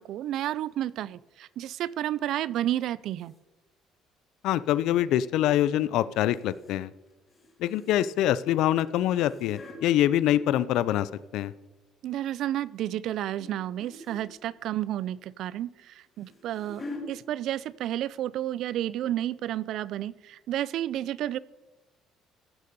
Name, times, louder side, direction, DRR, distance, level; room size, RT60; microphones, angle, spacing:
voice 1, 0.0-3.3 12.0-21.4, right 12 dB, 60° right, 21 dB, 0.3 m, -31 dB
sound 1, 3.2-3.4 6.3-6.8 7.1-8.3 8.9-9.8 10.8-11.6 12.1-12.4 13.4-13.5 13.8-14.3 15.8-17.0 17.9-18.1 18.4-18.5 19.0-19.1, left 2 dB, 25° left, 2.4 m, -45 dB
voice 2, 4.4-6.9 7.6-11.5, left 12 dB, 70° left, 17 dB, 0.4 m, -25 dB
14.5 x 6.8 x 5.2 m, 1.2 s
cardioid pair, 160°, 0 cm